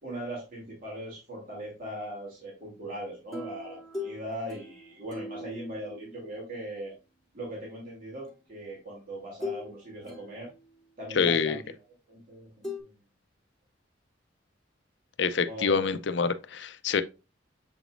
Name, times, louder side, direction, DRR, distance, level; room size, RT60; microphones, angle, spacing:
voice 1, 0.0-6.9 7.3-10.5 11.0-11.6 12.1-12.9 15.5-15.9, right 1 dB, 45° right, 2.9 m, -40 dB
sound 1, 3.3-6.9 8.3-8.4 9.4-9.7 10.0-10.9 12.6-12.8, left 3 dB, ahead, 1.7 m, -40 dB
voice 2, 11.1-11.6 15.2-17.0, left 5 dB, 70° left, 0.5 m, -26 dB
7.3 x 5.0 x 2.5 m
head